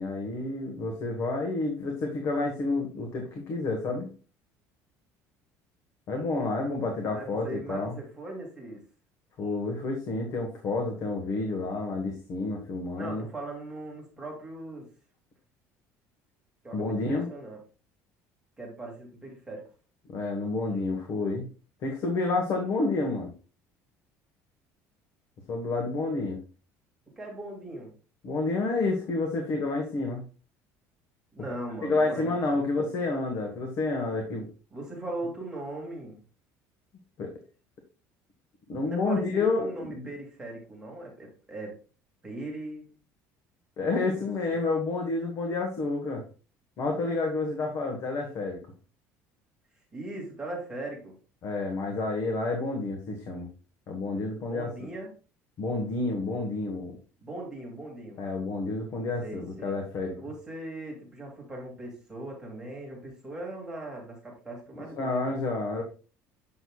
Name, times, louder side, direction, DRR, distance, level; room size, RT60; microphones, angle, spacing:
voice 1, 0.0-4.1 6.1-8.0 9.4-13.2 16.7-17.3 20.1-21.5 21.8-23.3 25.5-26.4 28.2-30.2 31.8-34.5 37.2-37.3 38.7-40.1 43.8-46.2 46.8-48.6 51.4-53.5 53.9-54.9 55.6-57.0 58.2-60.2 64.8-65.8, left 3 dB, 50° left, 2 dB, 1.4 m, -29 dB
voice 2, 7.1-8.8 13.0-14.9 16.6-17.6 18.6-19.7 27.2-27.9 31.3-32.7 34.7-36.2 38.8-41.7 42.2-42.9 44.5-44.6 49.9-51.1 54.4-55.1 57.2-58.2 59.2-59.7 60.2-65.4, right 2 dB, 10° right, -2 dB, 2.4 m, -39 dB
7.7 x 6.3 x 2.4 m, 0.36 s
cardioid pair, 135°, 6 cm